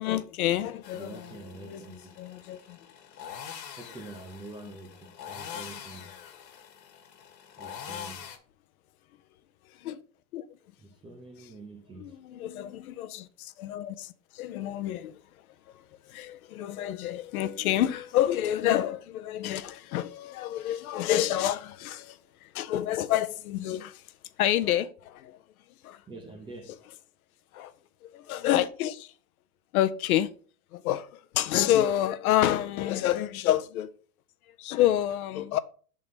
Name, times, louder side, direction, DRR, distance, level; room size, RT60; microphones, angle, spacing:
voice 1, 0.0-1.3 1.6-1.8 2.2-2.8 9.8-10.0 10.3-10.5 12.0-15.2 16.1-24.0 24.4-25.4 25.8-26.0 27.5-27.7 28.0-29.1 29.7-30.3 30.7-33.9 34.6-35.6, left 12 dB, 60° left, 0.6 m, -28 dB
sound 1, 0.8-8.4, left 8 dB, 80° left, 1.4 m, -44 dB
voice 2, 0.9-2.2 3.8-6.1 7.6-8.3 10.8-12.2 26.1-26.8, right 2 dB, 10° right, 0.6 m, -46 dB
5.1 x 3.8 x 5.7 m
hypercardioid pair, 130°, 49 cm